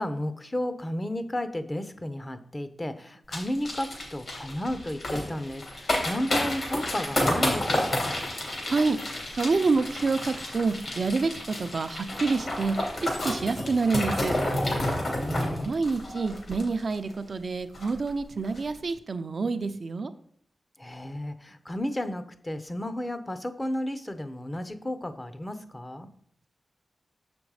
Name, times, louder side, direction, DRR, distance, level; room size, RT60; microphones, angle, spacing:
voice 1, 0.0-8.1 15.0-15.7 20.8-26.1, left 1 dB, 25° left, 11 dB, 0.8 m, -33 dB
sound 1, 3.3-17.1 17.4-17.5 17.7-18.1 18.4-18.6, left 1 dB, 65° left, 2.9 m, -30 dB
voice 2, 8.6-14.3 15.6-20.1, right 4 dB, 60° right, 10 dB, 0.6 m, -27 dB
7.0 x 5.2 x 4.8 m, 0.62 s
cardioid pair, 55°, 0 cm